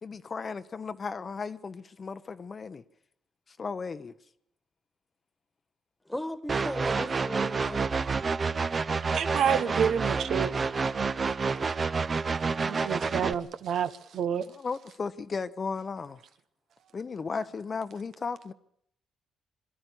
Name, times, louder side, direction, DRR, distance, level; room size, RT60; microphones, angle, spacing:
voice 1, 0.0-2.8 3.5-4.1 9.5-9.7 13.3-13.4 14.5-16.2 16.9-18.5, left 5 dB, 40° left, 0.8 m, -35 dB
voice 2, 6.0-7.9, left 1 dB, 5° left, 1.6 m, -36 dB
sound 1, 6.5-13.3, right 4 dB, 35° right, 0.8 m, -29 dB
voice 3, 9.1-10.5 12.6-14.5, right 8 dB, 70° right, 0.9 m, -28 dB
22.5 x 12.5 x 10.0 m
cardioid pair, 90°, 0 cm